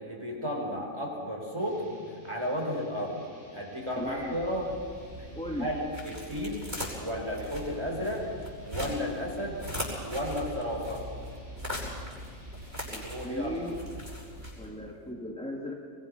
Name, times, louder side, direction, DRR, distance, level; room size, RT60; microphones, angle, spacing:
voice 1, 0.0-1.8 2.2-3.2 3.5-4.7 5.6-6.7 7.0-8.2 8.7-9.6 10.0-11.0 13.0-13.6, equal, 20° right, 0 dB, 4.7 m, -33 dB
sound 1, 1.6-14.1, left 1 dB, 40° left, 7.9 m, -52 dB
sound 2, 3.9-15.0, equal, 50° right, 8.3 m, -40 dB
voice 2, 4.0-4.4 5.4-5.7 12.9-13.8 14.6-15.7, left 1 dB, 5° left, 0 dB, 1.8 m, -36 dB
23.5 x 22.5 x 6.5 m, 2.1 s
omnidirectional pair, 1.4 m